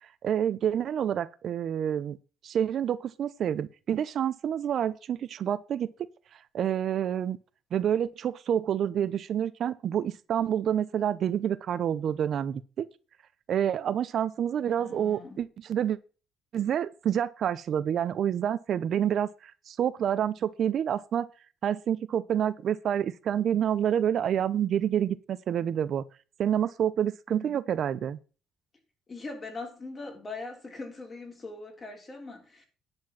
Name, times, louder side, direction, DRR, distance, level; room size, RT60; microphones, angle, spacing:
voice 1, 0.2-2.2 2.4-5.9 6.5-7.4 7.7-12.9 13.5-16.0 16.5-21.3 21.6-26.0 26.4-28.2, right 9 dB, 55° right, 0.7 m, -28 dB
voice 2, 14.8-15.4 27.3-27.6 29.1-32.7, left 3 dB, 30° left, 3.5 m, -41 dB
10.5 x 4.5 x 7.3 m
cardioid pair, 110°, 0 cm